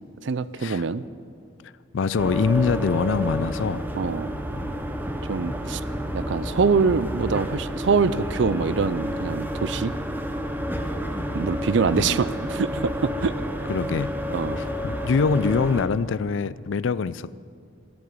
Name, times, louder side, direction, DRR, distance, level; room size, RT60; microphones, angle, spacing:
voice 1, 0.2-1.0 4.0-4.3 5.3-5.8 6.1-9.9 11.3-13.3 14.3-14.6, right 5 dB, 65° right, 15 dB, 0.5 m, -24 dB
voice 2, 1.9-3.9 4.5-4.8 11.9-12.2 13.7-14.2 14.8-17.3, left 5 dB, 75° left, 18 dB, 0.4 m, -24 dB
sound 1, 2.2-15.9, equal, 10° right, 0.9 m, -30 dB
13.0 x 10.5 x 9.6 m, 2.2 s
head